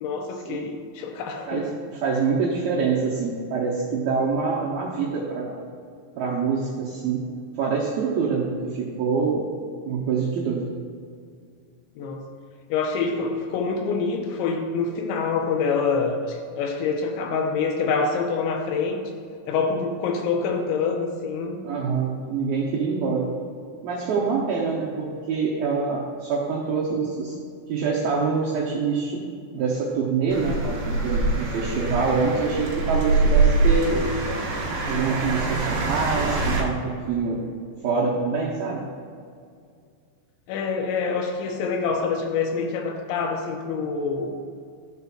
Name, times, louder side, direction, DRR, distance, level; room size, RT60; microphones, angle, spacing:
voice 1, 0.0-1.7 12.0-12.3 12.7-19.1 19.5-21.6 40.5-44.3, left 5 dB, 80° left, 3 dB, 2.9 m, -26 dB
voice 2, 1.5-5.6 6.2-7.2 7.6-9.5 9.8-10.7 21.6-23.3 23.8-27.3 27.7-29.3 29.5-34.1 34.8-37.4 37.8-38.8, right 5 dB, 80° right, -5 dB, 2.1 m, -25 dB
sound 1, 30.3-36.6, right 3 dB, 65° right, 2.1 m, -24 dB
13.5 x 6.8 x 2.4 m, 2.2 s
omnidirectional pair, 5.4 m